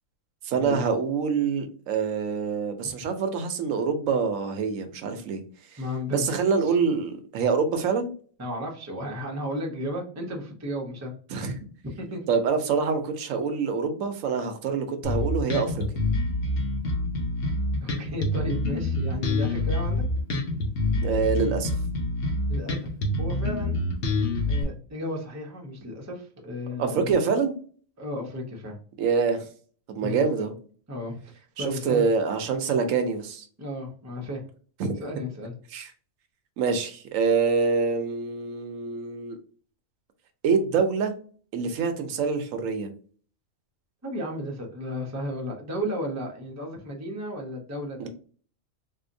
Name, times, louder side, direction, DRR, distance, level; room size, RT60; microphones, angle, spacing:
voice 1, 0.4-5.4 6.1-8.1 11.3-11.5 12.3-15.8 21.0-21.7 26.8-27.5 29.0-29.4 29.9-30.5 31.6-33.5 34.8-35.0 35.7-35.9 36.6-39.4 40.4-41.1 41.5-42.9 48.0-48.1, right 5 dB, 80° right, 8 dB, 1.0 m, -25 dB
voice 2, 5.8-6.8 8.4-11.1 11.8-12.2 17.8-20.0 22.5-22.9 23.2-23.8 24.5-27.1 28.0-28.8 30.0-30.3 30.9-32.1 33.6-34.4 35.0-35.6 44.0-48.1, equal, 15° right, 0 dB, 0.6 m, -34 dB
Bass guitar, 15.0-24.6, left 2 dB, 70° left, 1.2 m, -26 dB
3.9 x 2.8 x 2.6 m, 0.43 s
omnidirectional pair, 1.4 m